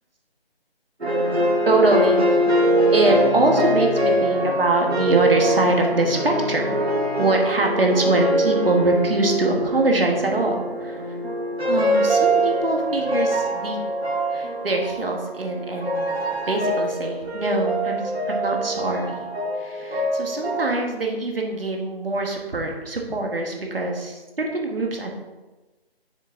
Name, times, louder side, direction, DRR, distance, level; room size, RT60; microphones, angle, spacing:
sound 1, 1.0-20.7, right 1 dB, 85° right, 2.0 m, -23 dB
voice 1, 1.6-2.3 2.9-6.6 7.2-11.2 11.6-13.9 14.3-16.1 16.4-19.3 19.5-25.1, right 2 dB, 65° right, 1 dB, 1.7 m, -23 dB
7.5 x 6.4 x 3.9 m, 1.2 s
figure-of-eight pair, 155°, 31 cm